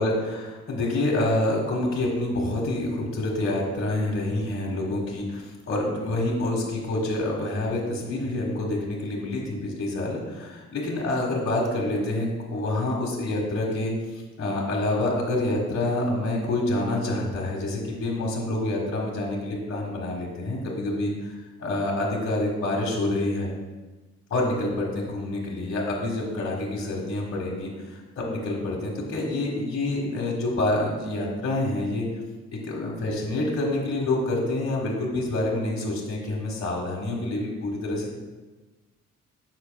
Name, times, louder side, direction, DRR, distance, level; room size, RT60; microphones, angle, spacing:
voice 1, 0.0-13.9 14.4-21.3 21.6-23.5 24.3-32.1 32.5-38.1, left 2 dB, 45° left, -3 dB, 1.6 m, -27 dB
9.7 x 6.5 x 2.3 m, 1.3 s
cardioid pair, 90°, 30 cm